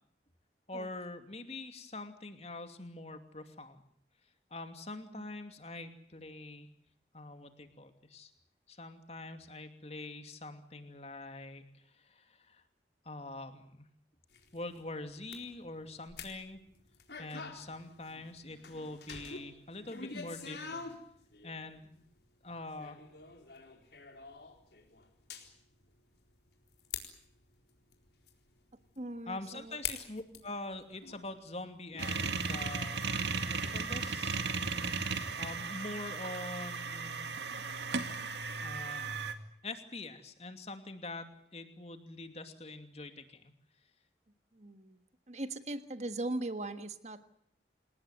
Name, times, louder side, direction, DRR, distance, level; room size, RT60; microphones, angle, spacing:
voice 1, 0.7-3.8 4.5-6.7 7.1-8.3 8.7-12.6 13.0-13.9 14.5-16.6 17.2-20.9 21.4-22.0 22.4-23.0 29.3-33.0 33.6-34.4 35.4-37.3 38.6-39.2 39.6-43.5, left 2 dB, 35° left, 7 dB, 2.7 m, -44 dB
sound 1, 14.3-32.7 33.1-33.5, left 6 dB, 70° left, 4.1 m, -46 dB
voice 2, 29.0-29.8 44.5-45.0 45.3-47.3, right 2 dB, 40° right, 10 dB, 1.6 m, -39 dB
sound 2, 32.0-39.3, right 4 dB, 80° right, 2.1 m, -36 dB
28.0 x 18.5 x 9.3 m, 0.65 s
head